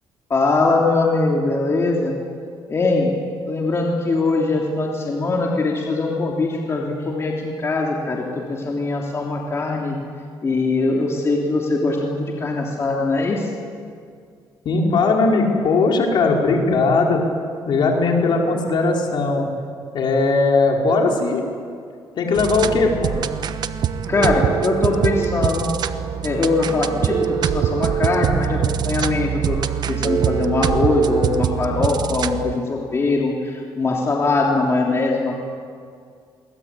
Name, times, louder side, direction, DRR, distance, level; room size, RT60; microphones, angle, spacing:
voice 1, 0.3-2.1 2.7-3.1 3.5-10.0 10.4-13.5 24.1-25.7 26.2-29.6 29.9-35.3, left 3 dB, 30° left, -1 dB, 3.2 m, -21 dB
voice 2, 14.6-17.2 17.7-19.5 19.9-21.4 22.2-23.1 31.6-31.7, left 3 dB, 60° left, 0 dB, 5.1 m, -18 dB
sound 1, 22.3-32.5, right 8 dB, 55° right, 1.1 m, -24 dB
Telephone, 24.1-25.2 27.1-28.1 30.0-31.1, right 9 dB, 70° right, 6.6 m, -25 dB
27.0 x 23.0 x 8.4 m, 2.2 s
cardioid pair, 120°, 9 cm